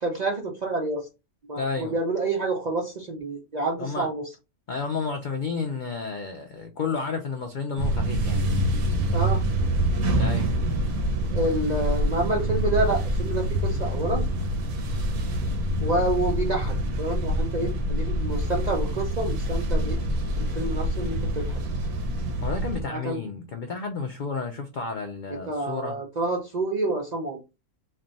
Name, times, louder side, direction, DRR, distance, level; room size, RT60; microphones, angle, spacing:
voice 1, 0.0-1.1 1.5-4.3 9.1-9.4 11.3-14.2 15.8-20.0 20.4-21.6 22.9-23.2 25.5-27.4, right 2 dB, 65° right, 0.4 m, -28 dB
voice 2, 1.6-2.0 3.8-4.1 4.7-8.5 10.1-10.5 22.4-26.0, left 4 dB, 80° left, 0.4 m, -31 dB
sound 1, 7.8-22.8, right 1 dB, 85° right, 1.3 m, -26 dB
3.3 x 2.2 x 3.9 m
omnidirectional pair, 1.5 m